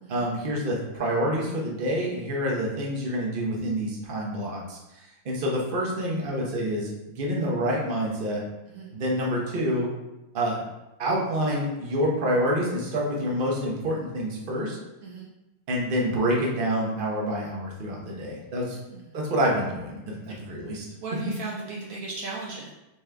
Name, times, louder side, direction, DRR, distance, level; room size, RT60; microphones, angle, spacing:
voice 1, 0.1-8.4 8.9-9.9 10.3-10.6 11.0-14.8 15.7-18.8 19.1-20.2 20.5-20.8, equal, 45° right, -2 dB, 0.7 m, -27 dB
voice 2, 18.7-19.1 20.3-20.4 21.0-22.7, right 3 dB, 90° right, -3 dB, 0.7 m, -37 dB
4.3 x 3.6 x 3.3 m, 0.98 s
omnidirectional pair, 2.3 m